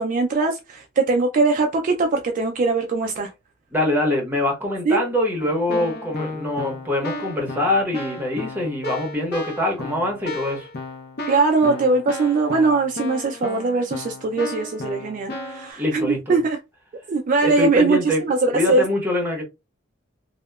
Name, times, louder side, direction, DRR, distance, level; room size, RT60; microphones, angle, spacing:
voice 1, 0.0-3.3 4.9-5.0 11.3-16.6 17.1-18.8, right 3 dB, 40° right, 0.3 m, -21 dB
voice 2, 3.7-10.7 15.8-16.4 17.4-18.2 18.5-19.4, left 1 dB, 10° right, 0.8 m, -24 dB
Keyboard (musical), 5.4-15.7, left 2 dB, 50° left, 0.6 m, -34 dB
2.8 x 2.1 x 2.2 m
head